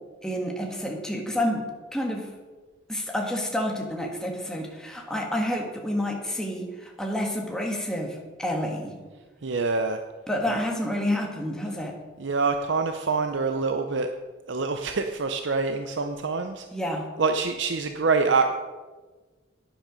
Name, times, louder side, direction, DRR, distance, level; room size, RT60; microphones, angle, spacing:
voice 1, 0.2-1.7 1.9-2.3 2.9-9.0 10.3-11.9 16.7-17.1, left 1 dB, 5° left, 0 dB, 1.5 m, -29 dB
voice 2, 9.4-10.0 10.5-10.6 12.2-14.1 14.5-16.7 17.2-18.5, right 4 dB, 65° right, 6 dB, 0.6 m, -25 dB
11.0 x 10.0 x 5.1 m, 1.3 s
head